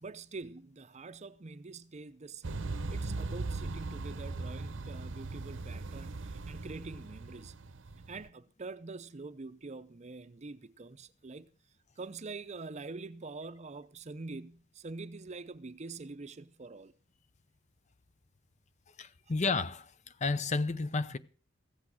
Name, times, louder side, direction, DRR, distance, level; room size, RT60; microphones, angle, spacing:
voice 1, 0.0-2.6 2.9-7.5 8.1-11.5 12.0-16.9, right 3 dB, 35° right, 0.6 m, -45 dB
sound 1, 2.4-8.3, right 3 dB, 75° right, 0.8 m, -39 dB
voice 2, 19.0-19.9 20.2-21.2, left 3 dB, 40° left, 0.7 m, -31 dB
15.0 x 8.4 x 6.3 m
head